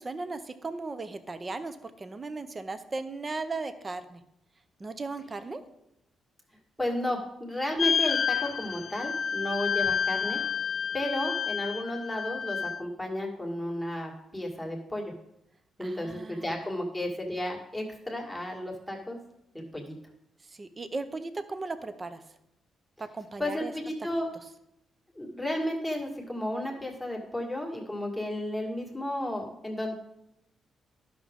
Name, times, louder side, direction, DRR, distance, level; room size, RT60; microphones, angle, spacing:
voice 1, 0.0-4.2 4.8-5.6 15.8-16.5 20.5-22.2 23.0-23.7, right 3 dB, 30° right, 10 dB, 0.7 m, -37 dB
voice 2, 6.8-10.4 10.9-15.1 15.8-19.2 19.7-20.0 23.4-24.3 25.2-29.9, left 1 dB, ahead, -1 dB, 1.8 m, -33 dB
sound 1, 7.8-12.8, left 7 dB, 50° left, 0.4 m, -29 dB
12.0 x 6.0 x 3.7 m, 0.82 s
cardioid pair, 100°, 0 cm